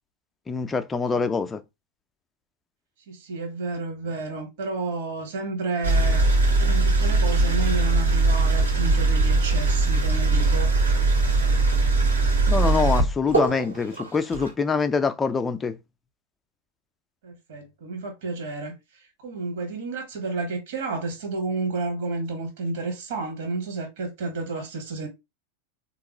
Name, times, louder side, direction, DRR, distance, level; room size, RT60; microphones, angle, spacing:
voice 1, 0.5-1.6 12.5-15.8, left 5 dB, 15° left, 0.4 m, -24 dB
voice 2, 3.1-6.2 6.6-10.7 17.2-25.1, right 3 dB, 55° right, 1.4 m, -31 dB
sound 1, 5.8-14.5, right 3 dB, 85° right, 1.6 m, -21 dB
3.7 x 2.9 x 2.9 m
figure-of-eight pair, 90°, 0 cm